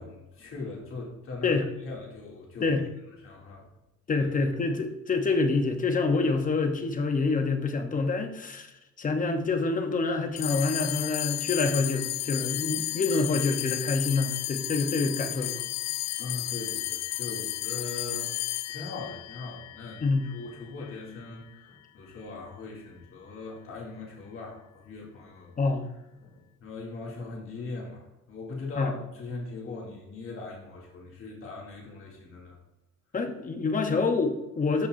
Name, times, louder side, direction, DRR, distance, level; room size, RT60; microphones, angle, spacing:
voice 1, 0.0-1.5 1.8-2.8 3.2-3.7 4.2-4.3 16.2-18.4 18.7-25.5 26.2-32.6, left 3 dB, 45° left, -3 dB, 2.6 m, -40 dB
voice 2, 4.1-8.7 9.0-15.6 20.0-20.3 25.6-25.9 28.8-28.9 33.1-34.9, left 3 dB, 25° left, 6 dB, 0.9 m, -27 dB
sound 1, 10.4-21.0, left 16 dB, 60° left, 0.4 m, -33 dB
12.5 x 5.9 x 2.6 m, 0.98 s
cardioid pair, 160°, 29 cm